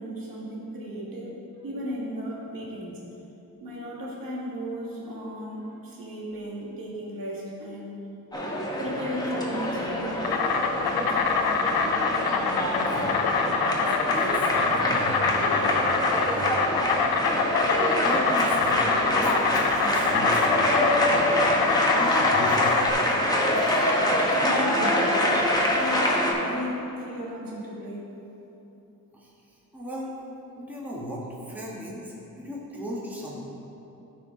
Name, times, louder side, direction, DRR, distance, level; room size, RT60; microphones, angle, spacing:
voice 1, 0.0-1.4 1.6-3.0 3.6-8.1 8.8-10.6 10.9-11.3 17.6-17.7 24.3-25.4 25.7-28.1, equal, 70° right, -4 dB, 1.9 m, -35 dB
sound 1, 8.3-26.3, left 1 dB, 10° left, 1.1 m, -25 dB
Insect, 9.9-22.9, left 5 dB, 80° left, 0.7 m, -26 dB
voice 2, 12.9-13.5 13.8-16.8 18.0-20.7 22.0-22.9 23.5-23.9 29.1-30.1 30.6-33.4, equal, 5° right, -5 dB, 1.4 m, -37 dB
13.0 x 4.7 x 3.8 m, 3.0 s
wide cardioid pair, 120°, 36 cm